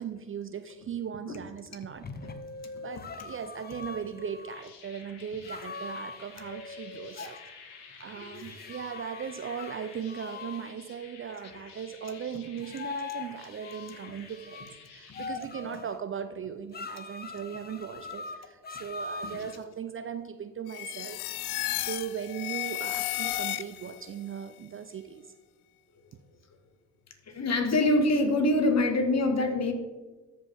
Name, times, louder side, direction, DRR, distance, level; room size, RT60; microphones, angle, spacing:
voice 1, 0.0-2.1 2.8-7.4 8.0-21.2 21.8-25.2, right 7 dB, 30° right, 9 dB, 0.5 m, -38 dB
sound 1, 1.7-4.6 5.4-7.4 8.6-10.7 12.6-14.7 15.1-16.0 16.7-19.6, left 4 dB, 25° left, 0.7 m, -41 dB
sound 2, 4.2-15.3, left 5 dB, 65° left, 1.6 m, -51 dB
sound 3, 20.7-24.0, left 16 dB, 90° left, 0.5 m, -33 dB
voice 2, 27.3-29.7, left 2 dB, 40° left, 6 dB, 1.6 m, -25 dB
13.5 x 5.2 x 3.5 m, 1.3 s
hypercardioid pair, 60°, 42 cm